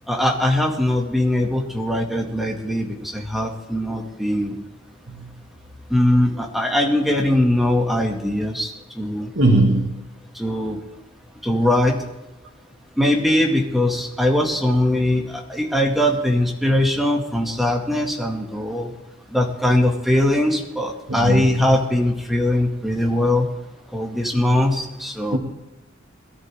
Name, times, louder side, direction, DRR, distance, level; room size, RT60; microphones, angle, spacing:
voice 1, 0.1-4.6 5.9-9.3 10.3-10.8 11.4-12.0 13.0-18.9 19.3-23.5 23.9-25.4, left 1 dB, ahead, 0 dB, 2.2 m, -21 dB
voice 2, 9.4-10.0 21.1-21.5 25.3-25.4, right 2 dB, 65° right, -1 dB, 2.3 m, -19 dB
22.0 x 12.5 x 3.7 m, 0.99 s
head